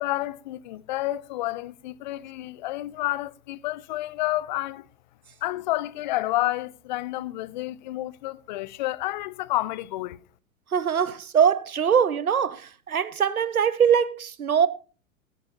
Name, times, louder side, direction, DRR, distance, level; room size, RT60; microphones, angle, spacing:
voice 1, 0.0-4.9 5.4-10.2, left 16 dB, 35° left, 0.4 m, -30 dB
voice 2, 10.7-14.7, right 7 dB, 85° right, 0.7 m, -22 dB
15.5 x 10.5 x 2.7 m
figure-of-eight pair, 95°, 42 cm